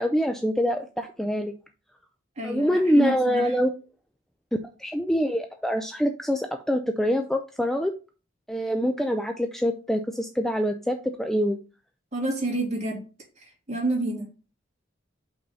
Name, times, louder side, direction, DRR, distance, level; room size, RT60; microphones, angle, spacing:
voice 1, 0.0-1.5 2.4-3.7 4.8-7.9 8.5-11.6, equal, ahead, 5 dB, 0.4 m, -25 dB
voice 2, 2.4-3.5 12.1-13.0 13.4-14.3, right 2 dB, 35° right, 0 dB, 2.5 m, -29 dB
5.5 x 4.2 x 5.4 m, 0.34 s
head